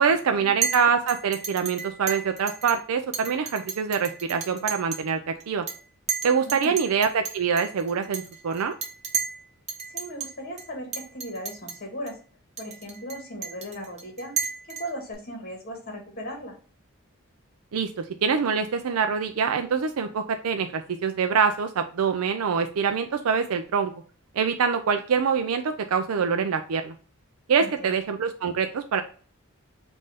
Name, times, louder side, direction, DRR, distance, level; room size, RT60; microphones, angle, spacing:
voice 1, 0.0-5.6 6.2-8.7 17.7-23.9 24.3-26.9 27.5-29.0, right 6 dB, 80° right, 7 dB, 0.4 m, -25 dB
Chink clink, 0.6-0.8 1.1-2.8 3.1-5.1 5.4-5.8 6.1-9.4 9.7-10.3 10.6-10.7 10.9-11.8 12.1-12.2 12.6-15.1, right 6 dB, 30° right, 0.9 m, -32 dB
voice 2, 6.4-6.8 9.9-12.2 12.6-14.4 14.7-16.5 27.6-27.9, equal, 45° left, 2 dB, 1.7 m, -37 dB
5.4 x 2.6 x 3.3 m, 0.40 s
head